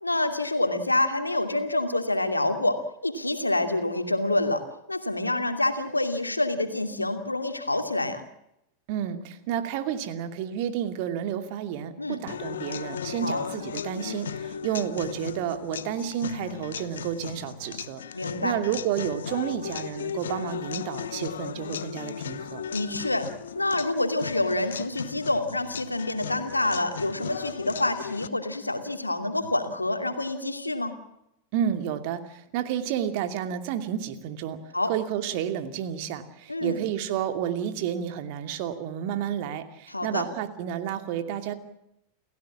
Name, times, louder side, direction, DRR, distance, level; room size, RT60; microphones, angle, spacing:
voice 1, 0.0-2.8 3.0-4.6 4.9-8.2 12.0-12.2 13.2-13.4 18.1-18.6 22.7-23.3 23.5-31.0 34.7-34.9 36.5-36.8 39.9-40.2, left 2 dB, 85° left, 7 dB, 2.6 m, -27 dB
voice 2, 8.9-18.0 18.4-22.6 31.5-34.6 34.9-41.5, right 9 dB, 45° right, 8 dB, 2.5 m, -31 dB
sound 1, 12.3-28.3, left 8 dB, 65° left, 1.0 m, -36 dB
29.0 x 15.5 x 7.3 m, 0.82 s
figure-of-eight pair, 90°, 0 cm